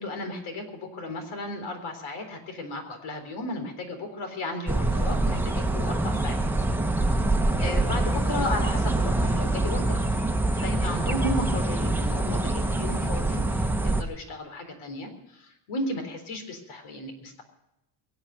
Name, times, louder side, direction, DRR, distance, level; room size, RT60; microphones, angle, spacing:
voice 1, 0.0-6.4 7.1-7.2 7.6-17.4, left 1 dB, 75° left, 6 dB, 4.0 m, -35 dB
sound 1, 4.7-14.0, right 2 dB, 5° right, 1.0 m, -25 dB
23.5 x 8.1 x 6.3 m, 0.89 s
cardioid pair, 105°, 49 cm